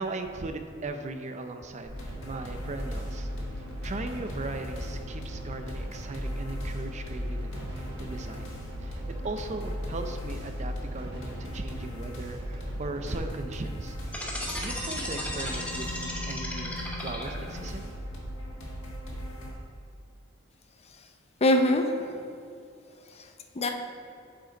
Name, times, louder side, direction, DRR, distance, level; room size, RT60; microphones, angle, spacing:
voice 1, 0.0-3.3 3.8-14.0 14.3-17.9, right 2 dB, 35° right, 7 dB, 0.5 m, -38 dB
sound 1, 1.8-13.2, left 1 dB, 55° right, 1.7 m, -39 dB
sound 2, 1.9-19.5, equal, 65° left, 1.6 m, -39 dB
sound 3, 14.1-17.6, left 1 dB, 5° left, 1.0 m, -35 dB
voice 2, 21.4-22.3 23.0-23.7, left 1 dB, 30° left, 5 dB, 0.5 m, -26 dB
9.4 x 5.2 x 3.9 m, 2.5 s
head